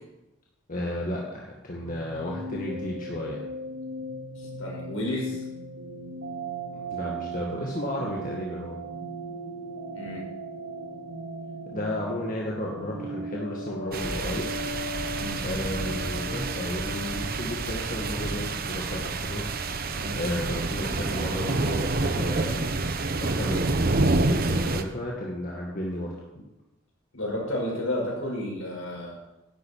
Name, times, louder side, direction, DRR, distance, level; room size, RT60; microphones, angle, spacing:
voice 1, 0.7-3.4 6.7-8.8 11.7-14.5 15.4-19.4 20.1-22.8 23.2-26.1, left 1 dB, 40° left, -3 dB, 1.9 m, -33 dB
sound 1, 1.8-21.3, right 1 dB, 80° right, 2.1 m, -38 dB
voice 2, 4.4-5.5 9.9-10.3 15.2-15.4 19.9-20.1 27.1-29.2, left 1 dB, 70° left, -2 dB, 5.4 m, -32 dB
sound 2, 13.9-24.8, right 3 dB, 45° right, 0.9 m, -28 dB
11.5 x 7.9 x 8.6 m, 0.96 s
head